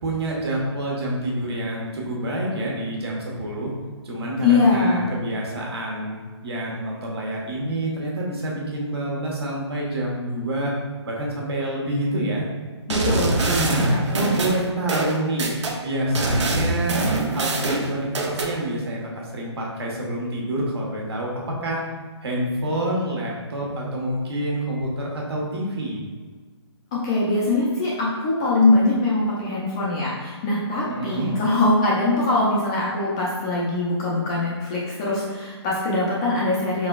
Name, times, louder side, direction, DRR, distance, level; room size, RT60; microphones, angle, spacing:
voice 1, 0.0-3.7 4.0-6.2 6.4-10.7 11.0-12.4 13.5-15.6 15.8-17.0 17.3-21.8 22.2-26.0 30.9-31.4, right 1 dB, 60° right, -3 dB, 1.3 m, -27 dB
voice 2, 4.4-5.1 12.9-13.8 26.9-36.9, left 2 dB, 15° left, -6 dB, 0.3 m, -22 dB
sound 1, 12.9-15.8 16.2-18.5, right 2 dB, 80° right, 0.7 m, -24 dB
4.7 x 3.9 x 2.3 m, 1.4 s
hypercardioid pair, 165°, 15 cm